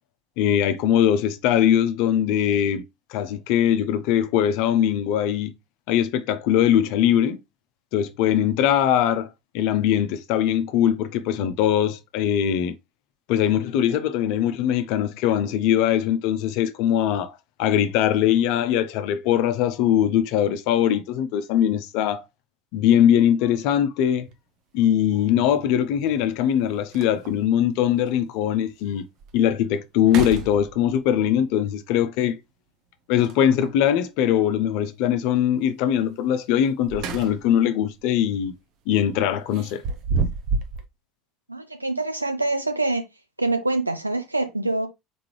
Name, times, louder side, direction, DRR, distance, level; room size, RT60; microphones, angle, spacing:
voice 1, 0.4-2.8 3.1-5.5 5.9-7.4 7.9-9.3 9.5-12.7 13.3-17.3 17.6-22.2 22.7-24.3 24.7-29.1 29.3-32.4 33.1-38.5 38.9-39.8, left 10 dB, 55° left, 0.6 m, -21 dB
sound 1, 24.2-24.3 26.1-26.2 26.6-26.7 26.9-27.5 28.1-28.2 28.7-28.8 29.2-29.6 30.0-31.1 33.2-33.8 36.6-37.6 38.0-38.2 39.5-40.8, right 4 dB, 55° right, 0.8 m, -30 dB
voice 2, 41.5-43.0 43.4-44.9, right 2 dB, 85° right, 0.8 m, -25 dB
4.2 x 3.7 x 3.1 m
figure-of-eight pair, 65°, 0 cm